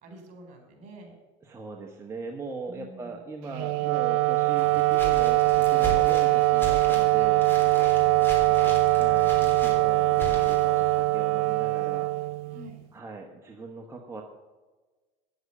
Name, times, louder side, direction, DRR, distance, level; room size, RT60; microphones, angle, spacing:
voice 1, 0.0-1.2 2.7-3.2 7.5-7.7 7.9-8.7 12.5-12.8, right 1 dB, 50° right, 4 dB, 4.1 m, -48 dB
voice 2, 1.5-7.5 8.9-12.1 12.9-14.2, right 4 dB, 15° right, 1 dB, 1.2 m, -40 dB
Wind instrument woodwind instrument, 3.5-12.8, right 20 dB, 70° right, 0.5 m, -22 dB
sound 1, 4.6-11.0, right 1 dB, 15° left, 3.7 m, -38 dB
9.5 x 7.9 x 6.8 m, 1.3 s
supercardioid pair, 120°, 17 cm